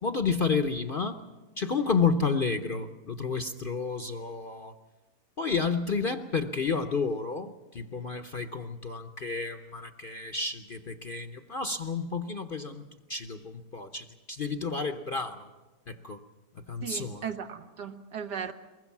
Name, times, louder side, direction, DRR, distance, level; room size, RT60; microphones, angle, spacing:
voice 1, 0.0-1.2 1.6-4.7 5.4-12.8 13.1-15.5 15.9-16.2 16.7-17.2, left 4 dB, 45° left, 8 dB, 0.8 m, -31 dB
voice 2, 16.8-18.5, right 7 dB, 80° right, 7 dB, 1.8 m, -37 dB
23.5 x 21.0 x 7.2 m, 1.2 s
omnidirectional pair, 1.8 m